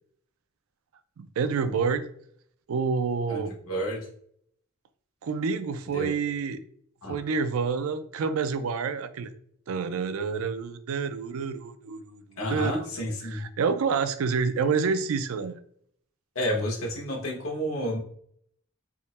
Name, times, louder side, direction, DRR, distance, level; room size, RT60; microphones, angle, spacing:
voice 1, 1.2-2.0 2.7-3.5 5.2-6.6 7.1-9.3 9.7-12.9 13.2-15.6, right 5 dB, 85° right, 11 dB, 0.4 m, -28 dB
voice 2, 3.3-4.1 5.9-6.1 7.0-7.2 12.4-13.5 16.3-18.0, equal, 90° left, -1 dB, 1.1 m, -30 dB
3.5 x 2.1 x 4.1 m, 0.65 s
head